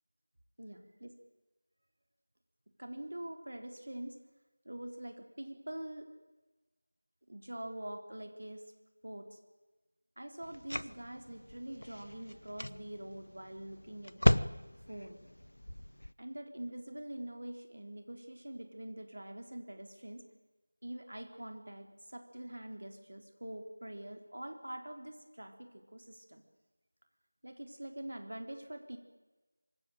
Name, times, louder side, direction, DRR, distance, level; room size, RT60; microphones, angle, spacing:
voice 1, 0.6-1.1 2.8-4.2 4.7-6.1 7.3-8.6 9.0-9.4 10.2-14.4 14.9-15.2 16.2-20.2 20.8-26.4 27.4-29.0, right 1 dB, 70° right, 6 dB, 3.7 m, -45 dB
sound 1, 10.4-16.1, left 1 dB, 85° left, 1.1 m, -35 dB
25.0 x 21.5 x 9.2 m, 1.2 s
figure-of-eight pair, 175°, 0 cm